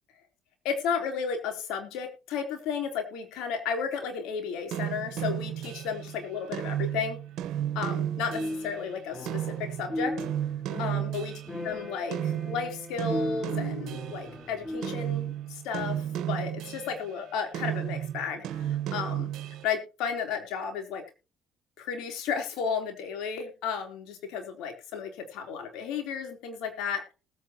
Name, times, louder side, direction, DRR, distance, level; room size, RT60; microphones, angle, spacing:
voice 1, 0.6-7.2 7.8-10.1 10.8-11.3 11.6-19.3 19.6-21.0 21.8-27.1, left 6 dB, 75° left, 4 dB, 3.6 m, -33 dB
sound 1, 4.7-11.8 12.1-14.4 14.8-17.1 17.5-19.6, right 11 dB, 70° right, 1.2 m, -33 dB
sound 2, 8.3-9.6 9.9-15.2, left 1 dB, 20° left, 5.5 m, -37 dB
19.5 x 9.1 x 3.0 m, 0.31 s
hypercardioid pair, 65°, 0 cm